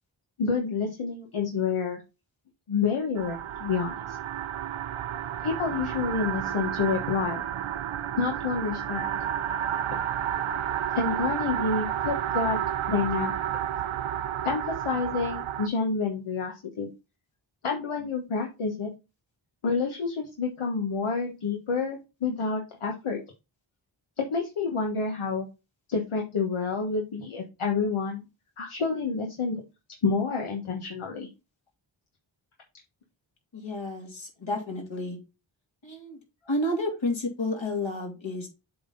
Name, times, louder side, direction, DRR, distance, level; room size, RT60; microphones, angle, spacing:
voice 1, 0.4-2.0 2.7-4.2 5.4-7.4 8.2-9.0 10.9-12.6 12.8-13.4 14.4-16.9 17.6-18.9 19.6-23.2 24.2-25.5 25.9-28.2 28.6-29.6 30.0-31.3 36.6-36.8, left 5 dB, 85° left, 1 dB, 1.3 m, -28 dB
sound 1, 3.2-15.7, right 10 dB, 75° right, 0.6 m, -31 dB
voice 2, 33.5-35.2 35.8-36.2 36.5-38.5, left 1 dB, 70° left, 1 dB, 2.7 m, -31 dB
7.6 x 4.0 x 3.8 m, 0.26 s
cardioid pair, 55°, 48 cm